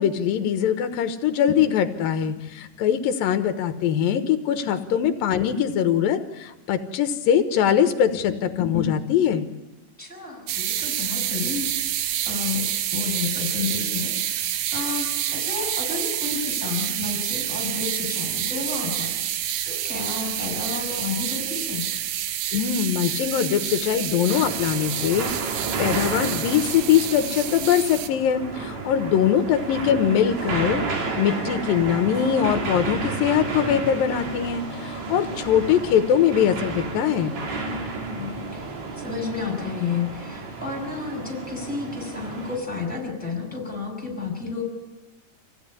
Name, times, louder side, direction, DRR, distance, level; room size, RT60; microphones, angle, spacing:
voice 1, 0.0-9.5 22.5-37.3, left 9 dB, 85° left, 9 dB, 2.9 m, -22 dB
voice 2, 10.0-12.7 12.9-21.9 29.2-29.4 37.7-44.6, left 5 dB, ahead, 2 dB, 5.9 m, -31 dB
sound 1, 10.5-28.1, right 11 dB, 75° right, 2.6 m, -28 dB
sound 2, 24.3-42.6, right 3 dB, 55° right, 3.9 m, -32 dB
26.0 x 16.0 x 9.9 m, 1.1 s
omnidirectional pair, 4.0 m